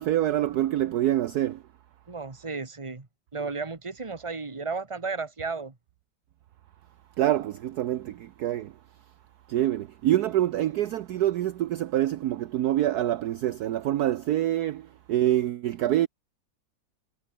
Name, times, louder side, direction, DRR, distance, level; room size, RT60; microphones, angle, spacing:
voice 1, 0.0-1.6 7.2-8.7 9.5-16.1, right 13 dB, 65° right, 1.1 m, -26 dB
voice 2, 2.1-5.7, right 4 dB, 15° right, 1.6 m, -34 dB
omnidirectional pair, 2.0 m